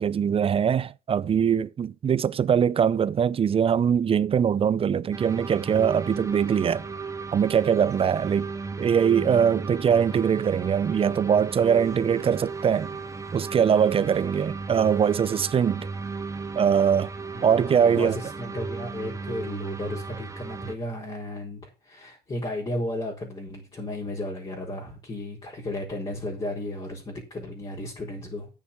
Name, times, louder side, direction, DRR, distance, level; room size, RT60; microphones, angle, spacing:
voice 1, 0.0-6.8 7.3-8.5 8.8-12.9 13.3-15.9 16.5-17.1 17.4-18.2, right 7 dB, 35° right, 0.5 m, -22 dB
sound 1, 5.1-20.7, right 4 dB, 20° right, 1.4 m, -35 dB
voice 2, 17.3-28.5, left 1 dB, 25° left, 4.9 m, -34 dB
9.4 x 7.3 x 7.1 m
cardioid pair, 110°, 17 cm